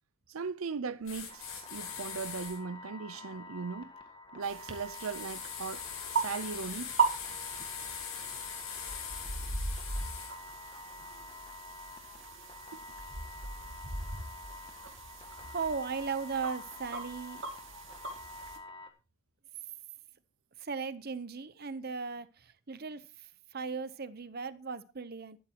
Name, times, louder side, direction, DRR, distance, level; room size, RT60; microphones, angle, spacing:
voice 1, 0.3-3.9 4.3-6.9 12.7-12.8, right 5 dB, 85° right, 0.6 m, -38 dB
sound 1, 1.0-2.6 4.9-10.3, left 7 dB, 80° left, 5.3 m, -42 dB
sound 2, 1.3-18.9, left 3 dB, 25° left, 1.6 m, -48 dB
sound 3, 4.4-18.6, right 4 dB, 65° right, 2.5 m, -38 dB
voice 2, 15.4-17.4 20.6-25.4, right 5 dB, 50° right, 0.8 m, -37 dB
13.5 x 12.0 x 3.0 m
head